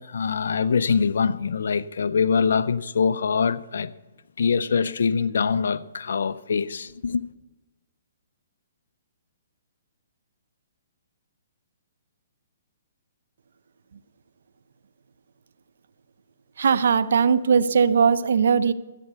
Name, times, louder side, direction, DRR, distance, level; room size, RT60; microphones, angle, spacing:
voice 1, 0.0-3.9 4.4-7.2, left 5 dB, 75° left, 0.5 m, -24 dB
voice 2, 16.6-18.7, right 6 dB, 70° right, 0.6 m, -19 dB
14.0 x 8.3 x 6.8 m
hypercardioid pair, 145°, 0 cm